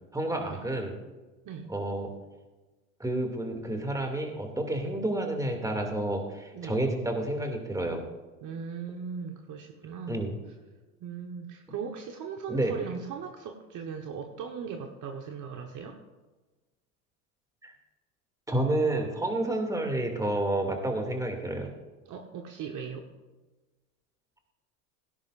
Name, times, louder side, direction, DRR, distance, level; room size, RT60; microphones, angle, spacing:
voice 1, 0.1-0.9 1.7-2.1 3.0-8.0 10.1-10.3 12.5-12.7 17.6-17.7 18.5-21.7, right 1 dB, 10° right, 3 dB, 2.5 m, -30 dB
voice 2, 8.4-10.3 11.0-16.0 22.0-23.1, right 6 dB, 45° right, 3 dB, 1.3 m, -39 dB
17.5 x 10.5 x 2.6 m, 1.2 s
hypercardioid pair, 90°, 44 cm